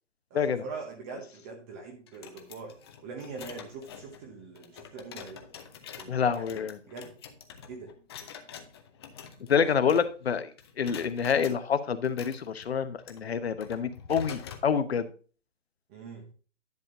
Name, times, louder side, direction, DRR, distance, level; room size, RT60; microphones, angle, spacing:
voice 1, 0.3-2.8 3.0-5.4 6.0-6.5 6.9-7.1 7.7-7.9 9.6-9.7 15.9-16.3, right 4 dB, 15° right, 2 dB, 0.7 m, -43 dB
sound 1, 2.1-10.3 10.6-11.6 12.0-14.7, left 7 dB, 20° left, 0.7 m, -47 dB
voice 2, 6.1-6.8 9.5-10.5 10.8-15.1, left 7 dB, 55° left, 12 dB, 1.0 m, -27 dB
11.0 x 6.7 x 2.5 m, 0.38 s
figure-of-eight pair, 140°, 36 cm